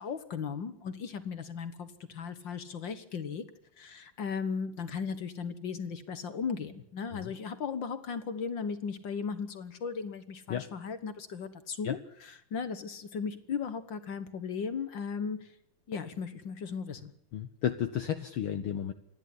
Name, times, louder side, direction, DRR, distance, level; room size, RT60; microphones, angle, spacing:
voice 1, 0.0-3.4 3.8-15.5 15.9-17.1, left 6 dB, 55° left, 12 dB, 1.4 m, -36 dB
voice 2, 17.3-18.9, left 9 dB, 75° left, 9 dB, 1.2 m, -33 dB
27.0 x 11.0 x 9.7 m, 0.74 s
omnidirectional pair, 3.7 m